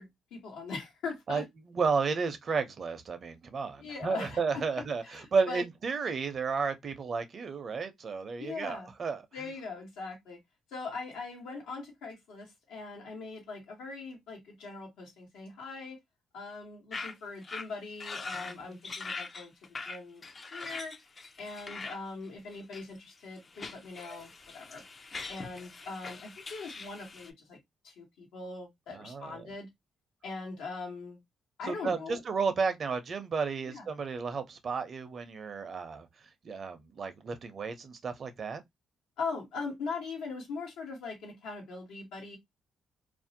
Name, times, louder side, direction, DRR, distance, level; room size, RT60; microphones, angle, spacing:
voice 1, 0.0-1.4 3.8-5.6 8.4-8.9 9.3-10.4 10.7-16.0 16.3-20.2 20.5-20.9 21.4-24.8 25.3-27.6 27.8-29.7 30.2-31.2 31.6-32.2 33.7-33.9 39.2-42.4, left 4 dB, 90° left, 1.1 m, -41 dB
voice 2, 1.8-9.2 18.3-18.8 28.9-29.5 31.7-36.1 36.4-38.6, right 5 dB, 45° right, 0.5 m, -32 dB
sound 1, 16.9-17.1 17.4-17.7 18.0-18.6 18.8-22.0 22.5-23.0 23.4-27.3, left 4 dB, 35° left, 0.4 m, -42 dB
2.5 x 2.0 x 2.6 m
cardioid pair, 90°, 0 cm